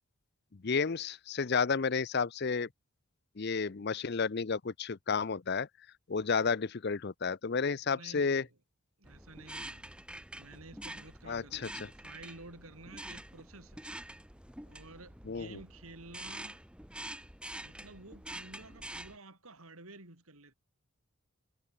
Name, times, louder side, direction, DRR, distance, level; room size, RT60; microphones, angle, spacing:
voice 1, 0.6-2.7 3.4-5.7 6.1-8.4 11.3-11.9 15.3-15.6, left 5 dB, 45° left, 0.6 m, -31 dB
voice 2, 7.9-8.6 9.0-9.9 10.4-13.9 14.6-16.6 17.6-20.5, right 2 dB, 75° right, 4.9 m, -52 dB
sound 1, 9.0-19.2, right 1 dB, 5° right, 3.7 m, -46 dB
head